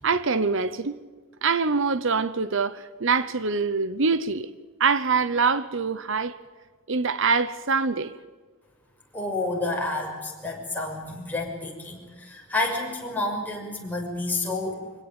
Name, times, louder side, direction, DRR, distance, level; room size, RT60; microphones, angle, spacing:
voice 1, 0.0-1.0 1.4-4.5 4.8-6.3 6.9-8.1, right 4 dB, 60° right, 0.9 m, -24 dB
voice 2, 9.1-14.9, left 2 dB, 10° left, 6.2 m, -30 dB
26.0 x 17.5 x 9.0 m
head